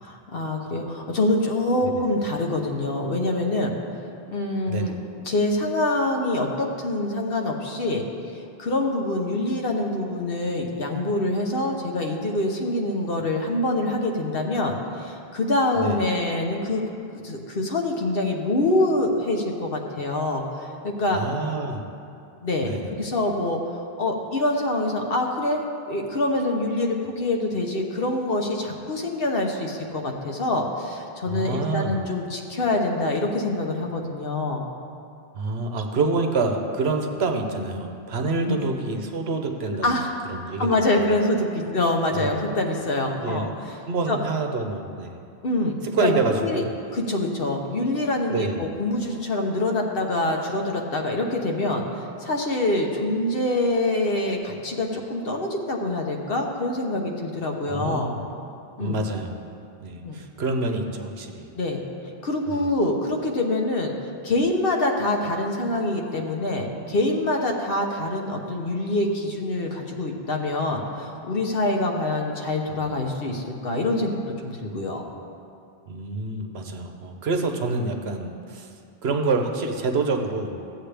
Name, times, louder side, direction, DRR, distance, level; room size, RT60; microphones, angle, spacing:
voice 1, 0.0-3.7 4.3-4.9 5.2-8.0 8.6-16.8 17.1-21.2 22.4-34.6 38.5-38.7 39.8-40.1 40.6-43.5 44.1-44.2 45.4-45.8 46.0-46.1 46.4-46.6 46.9-58.1 58.8-59.0 60.0-60.2 61.6-61.8 62.2-63.9 64.2-75.0, left 2 dB, 65° left, 2 dB, 1.2 m, -25 dB
voice 2, 4.7-5.0 15.8-16.0 21.1-21.8 22.6-22.9 31.3-32.0 35.3-40.0 40.3-41.1 42.1-42.4 43.2-43.5 43.9-45.2 45.8-46.7 48.3-48.6 57.7-58.2 58.8-59.4 59.8-61.5 62.5-62.7 75.9-78.7 79.0-80.5, right 3 dB, 75° right, 4 dB, 1.1 m, -27 dB
15.0 x 8.0 x 3.4 m, 2.5 s
omnidirectional pair, 1.1 m